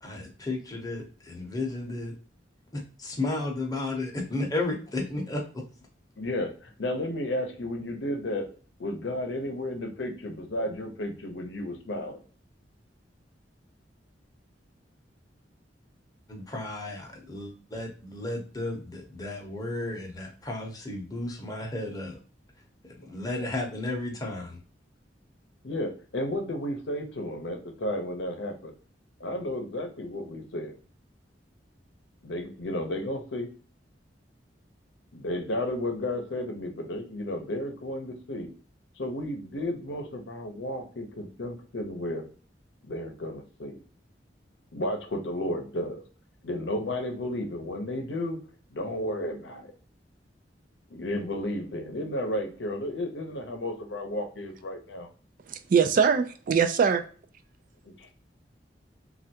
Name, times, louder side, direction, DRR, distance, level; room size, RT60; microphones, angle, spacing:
voice 1, 0.0-2.1 2.7-5.6 16.3-22.2 22.8-24.6, left 2 dB, 20° left, 0 dB, 0.8 m, -33 dB
voice 2, 6.2-8.5 8.8-12.2 25.6-28.7 29.2-30.8 32.2-33.5 35.1-38.5 39.0-42.3 42.9-43.8 44.7-46.0 46.4-48.4 48.7-49.7 50.9-55.1 57.8-58.1, left 1 dB, 80° left, 4 dB, 0.7 m, -33 dB
voice 3, 55.7-57.0, right 6 dB, 50° right, 7 dB, 0.3 m, -22 dB
3.3 x 2.4 x 2.7 m, 0.40 s
head